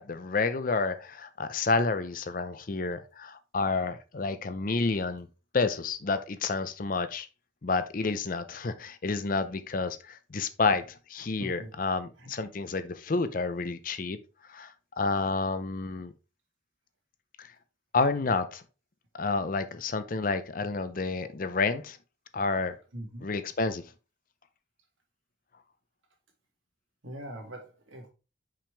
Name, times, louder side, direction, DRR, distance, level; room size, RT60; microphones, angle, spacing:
voice 1, 0.0-5.3 5.5-7.3 7.6-14.2 14.5-16.1 17.4-17.5 17.9-18.6 19.1-22.0 22.3-22.8 23.2-23.8, left 3 dB, 45° left, 0.5 m, -30 dB
voice 2, 22.9-23.3 27.0-28.1, right 1 dB, 85° right, 2.1 m, -42 dB
5.8 x 5.2 x 3.3 m
head